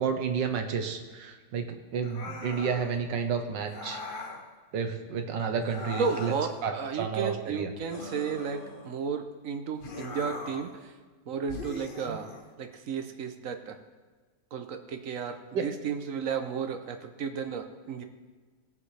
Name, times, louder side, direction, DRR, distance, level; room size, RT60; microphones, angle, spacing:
voice 1, 0.0-1.7 1.9-4.0 4.7-6.3 6.6-7.7 12.1-12.2 15.5-15.6, right 6 dB, 90° right, 6 dB, 1.7 m, -31 dB
sound 1, 2.0-3.0 3.7-4.5 5.6-6.6 7.9-9.0 9.8-10.8 11.5-12.5, left 3 dB, 40° left, 0.9 m, -40 dB
voice 2, 6.0-10.9 11.3-12.3 12.6-13.8 14.5-18.0, right 6 dB, 60° right, 7 dB, 1.0 m, -33 dB
19.5 x 7.2 x 3.3 m, 1.4 s
omnidirectional pair, 1.9 m